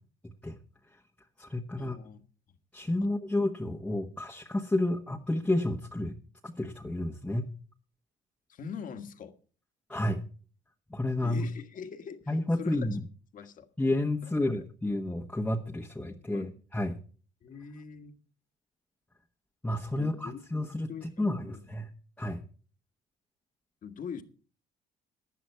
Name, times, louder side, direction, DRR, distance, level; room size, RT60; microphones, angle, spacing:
voice 1, 0.2-0.6 1.4-2.0 2.7-6.2 6.4-7.5 9.9-10.2 10.9-11.5 12.3-13.0 13.8-17.0 19.6-20.9 21.2-21.9 22.2-22.4, left 1 dB, 10° left, 1.2 m, -30 dB
voice 2, 1.8-2.2 3.0-3.1 8.5-9.3 11.2-12.9 13.3-13.7 14.3-14.6 16.3-16.5 17.4-18.2 20.0-21.6 23.8-24.2, left 6 dB, 50° left, 1.6 m, -43 dB
15.5 x 10.0 x 4.6 m
cardioid pair, 110°, 17 cm